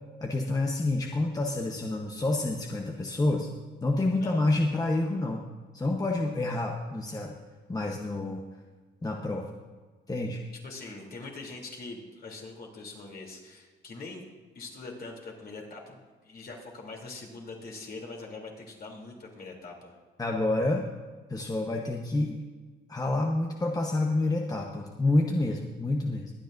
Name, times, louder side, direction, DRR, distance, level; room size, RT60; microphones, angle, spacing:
voice 1, 0.2-3.5 3.8-5.5 5.7-7.4 7.7-8.4 9.0-9.5 10.1-10.4 20.2-20.9 21.3-22.5 22.9-26.3, left 2 dB, 20° left, 1 dB, 1.0 m, -28 dB
voice 2, 10.6-14.3 14.5-20.0, left 3 dB, 50° left, -1 dB, 3.1 m, -43 dB
22.5 x 9.3 x 2.6 m, 1.4 s
cardioid pair, 90°, 20 cm